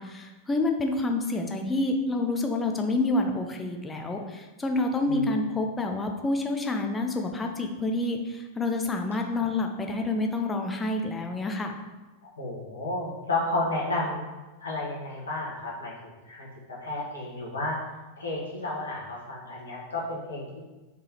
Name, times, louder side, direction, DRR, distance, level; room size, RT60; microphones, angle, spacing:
voice 1, 0.0-11.7, left 2 dB, 15° left, 3 dB, 0.4 m, -28 dB
voice 2, 12.4-14.3 14.6-16.5 16.8-17.8 18.2-20.6, left 2 dB, 70° left, -5 dB, 1.1 m, -32 dB
3.5 x 3.3 x 2.9 m, 1.2 s
figure-of-eight pair, 90°, 0 cm